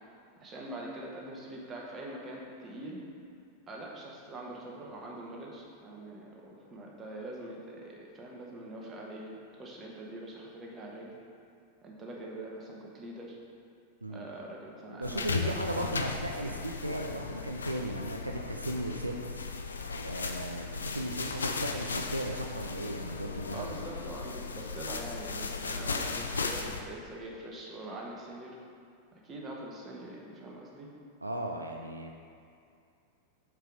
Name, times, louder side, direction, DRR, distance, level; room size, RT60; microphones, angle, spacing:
voice 1, 0.4-3.0 3.7-11.1 11.8-13.4 14.1-16.0 23.5-28.6 29.1-30.9, right 1 dB, 25° right, -2 dB, 1.1 m, -43 dB
voice 2, 14.9-19.4 20.0-23.8 31.2-32.1, right 1 dB, 85° right, 1 dB, 0.4 m, -36 dB
sound 1, 15.0-26.8, left 4 dB, 75° left, 0.4 m, -36 dB
4.7 x 4.7 x 5.0 m, 2.4 s
figure-of-eight pair, 90°, 0 cm